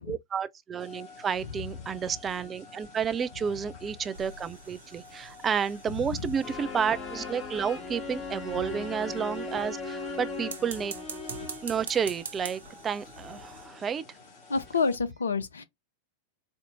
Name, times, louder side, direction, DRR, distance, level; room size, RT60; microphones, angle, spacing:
voice 1, 0.0-10.9 11.6-14.0, right 7 dB, 20° right, 0.5 m, -31 dB
sound 1, 0.8-15.0, left 4 dB, 40° left, 2.1 m, -51 dB
sound 2, 4.1-7.0 10.4-13.7, right 5 dB, 70° right, 1.0 m, -44 dB
sound 3, 6.4-11.8, left 3 dB, 20° left, 1.7 m, -38 dB
voice 2, 14.5-15.6, left 4 dB, 70° left, 0.7 m, -27 dB
4.5 x 2.8 x 2.6 m
figure-of-eight pair, 90°, 0 cm